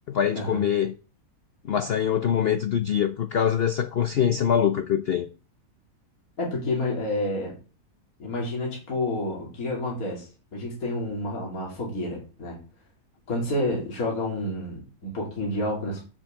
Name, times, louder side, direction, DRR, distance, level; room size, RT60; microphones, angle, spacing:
voice 1, 0.1-0.9 1.6-5.3, left 8 dB, 80° left, 0.5 m, -24 dB
voice 2, 6.4-7.6 8.2-12.6 13.3-16.0, left 1 dB, 55° left, 3.0 m, -29 dB
7.2 x 5.4 x 7.2 m
omnidirectional pair, 1.8 m